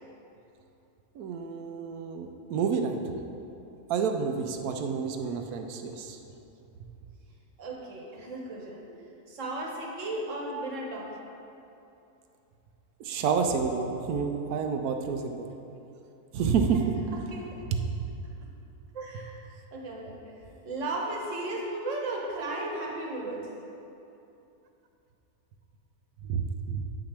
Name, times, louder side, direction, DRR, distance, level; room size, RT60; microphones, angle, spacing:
voice 1, 1.2-3.0 3.9-6.2 9.0-9.1 13.0-15.5 16.3-16.8 26.2-26.9, right 6 dB, 75° right, 5 dB, 1.0 m, -29 dB
voice 2, 7.6-8.8 9.3-11.2 16.7-16.8 17.1-17.6 18.9-20.3 20.6-23.5, right 2 dB, 55° right, -1 dB, 1.3 m, -35 dB
8.6 x 5.8 x 3.4 m, 2.8 s
omnidirectional pair, 1.6 m